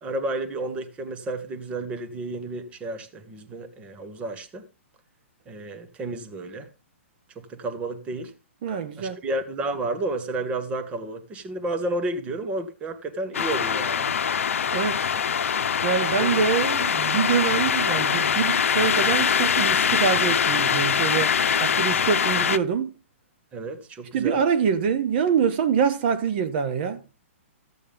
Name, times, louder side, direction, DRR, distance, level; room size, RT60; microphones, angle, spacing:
voice 1, 0.0-4.6 5.5-6.7 7.3-8.3 9.0-14.1 15.1-15.2 16.2-16.5 23.5-24.4, right 2 dB, 15° right, 1.2 m, -31 dB
voice 2, 8.6-9.2 14.7-15.1 15.8-21.3 21.6-22.9 24.1-27.0, right 7 dB, 50° right, 1.1 m, -25 dB
sound 1, 13.3-22.6, left 7 dB, 80° left, 0.7 m, -23 dB
14.0 x 8.4 x 3.5 m
hypercardioid pair, 145°, 7 cm